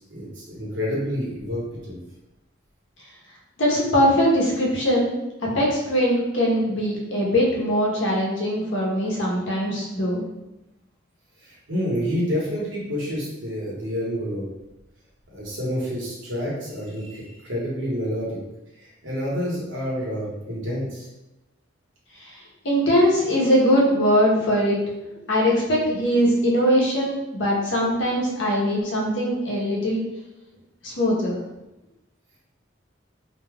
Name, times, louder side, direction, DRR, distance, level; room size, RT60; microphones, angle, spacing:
voice 1, 0.0-2.0 11.4-14.5 15.3-18.4 18.8-21.1, equal, 80° right, -5 dB, 1.1 m, -28 dB
voice 2, 3.6-5.1 5.5-10.2 22.6-24.8 25.3-30.0 30.8-31.4, equal, 70° left, -3 dB, 0.9 m, -21 dB
2.8 x 2.2 x 3.4 m, 0.97 s
head